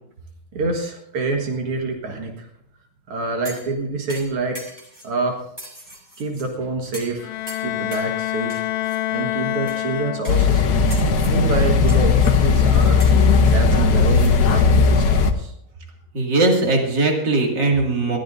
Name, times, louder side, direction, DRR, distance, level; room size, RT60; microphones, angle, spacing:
voice 1, 0.5-2.5 3.1-4.6 5.0-5.4 6.2-7.3 7.6-8.6 9.1-10.8 11.3-13.0 13.5-15.5, right 3 dB, 90° right, 2 dB, 2.5 m, -27 dB
sound 1, 3.4-3.7 4.1-5.1 5.6-6.5 6.9-7.2 7.5-8.1 8.5-9.0 9.7-9.8 10.2-10.6 10.9-11.4 11.9-12.4 13.0-14.3 14.7-14.8, equal, 10° right, 3.2 m, -40 dB
Bowed string instrument, 7.2-10.7, left 14 dB, 75° left, 1.4 m, -27 dB
sound 2, 10.3-15.3, left 4 dB, 55° left, 1.3 m, -16 dB
voice 2, 16.1-18.2, right 2 dB, 55° right, 0 dB, 3.0 m, -19 dB
21.0 x 14.0 x 2.6 m, 0.77 s
omnidirectional pair, 2.4 m